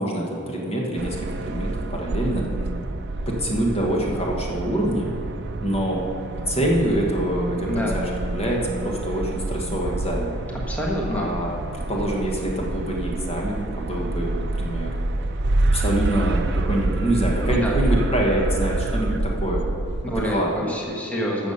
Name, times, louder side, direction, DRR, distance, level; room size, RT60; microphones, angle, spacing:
voice 1, 0.0-2.4 3.3-5.1 5.6-6.0 6.5-10.3 11.1-11.5 11.9-14.9 15.7-19.7 20.1-20.8, right 1 dB, 30° left, -2 dB, 1.4 m, -25 dB
sound 1, 1.0-20.3, right 2 dB, 55° right, 0.5 m, -27 dB
voice 2, 10.7-11.3 17.5-17.7 20.0-21.5, left 1 dB, 5° left, -3 dB, 1.3 m, -26 dB
13.0 x 7.0 x 5.6 m, 2.6 s
head